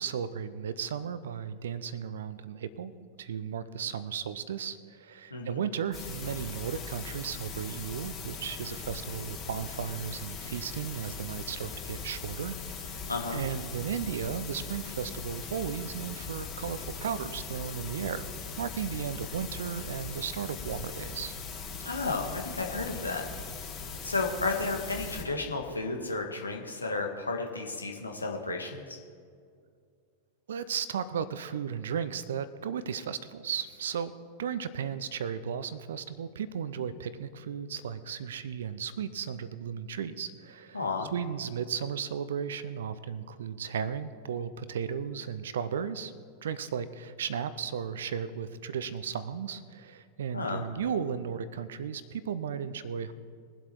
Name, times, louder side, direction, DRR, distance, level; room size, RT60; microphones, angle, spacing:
voice 1, 0.0-2.9 3.2-18.3 18.6-21.3 30.5-34.1 34.4-40.8 41.1-46.1 46.4-53.1, right 7 dB, 60° right, 15 dB, 0.7 m, -35 dB
voice 2, 5.3-5.6 13.1-13.4 21.8-23.2 24.0-29.0 40.7-41.1 50.3-50.6, left 3 dB, 80° left, 2 dB, 1.6 m, -32 dB
sound 1, 5.9-25.2, left 5 dB, 30° left, 2.9 m, -40 dB
21.5 x 7.9 x 4.7 m, 2.2 s
figure-of-eight pair, 90°, 0 cm